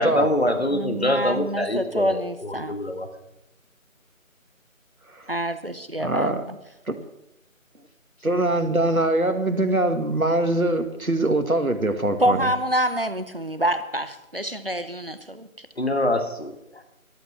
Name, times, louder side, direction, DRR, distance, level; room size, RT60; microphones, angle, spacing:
voice 1, 0.0-3.1 15.8-16.8, left 1 dB, 50° left, 7 dB, 1.8 m, -25 dB
voice 2, 0.7-2.7 5.3-6.6 12.2-15.7, right 1 dB, 45° right, 11 dB, 1.0 m, -27 dB
voice 3, 6.0-6.4 6.9-7.0 8.2-12.5, right 1 dB, 90° right, 7 dB, 2.1 m, -23 dB
14.5 x 11.5 x 5.9 m, 0.87 s
figure-of-eight pair, 170°, 41 cm